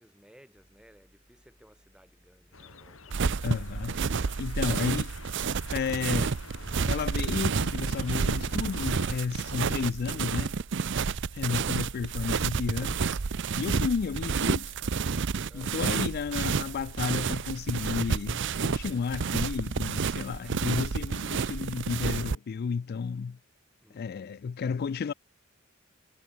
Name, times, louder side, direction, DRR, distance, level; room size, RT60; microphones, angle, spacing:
voice 1, 0.0-3.4 15.4-15.8 23.8-24.4, equal, 5° right, 3.4 m, -59 dB
sound 1, 0.5-19.4, equal, 35° left, 5.7 m, -66 dB
sound 2, 2.5-9.2, left 3 dB, 80° left, 4.0 m, -47 dB
sound 3, 3.1-22.4, right 5 dB, 60° right, 0.6 m, -30 dB
voice 2, 3.4-4.0 4.4-5.1 5.7-6.3 6.9-10.5 11.3-13.0 13.6-14.8 15.5-23.4 23.9-25.1, left 5 dB, 50° left, 0.3 m, -32 dB
head